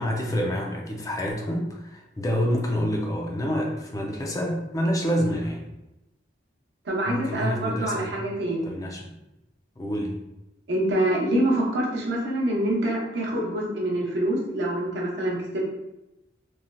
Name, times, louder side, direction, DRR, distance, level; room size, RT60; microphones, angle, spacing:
voice 1, 0.0-5.6 7.0-8.1 8.6-9.1 9.8-10.2, equal, 20° left, 0 dB, 0.4 m, -27 dB
voice 2, 6.8-8.7 10.7-15.6, right 1 dB, 60° right, -3 dB, 0.8 m, -26 dB
3.1 x 2.6 x 2.2 m, 0.95 s
head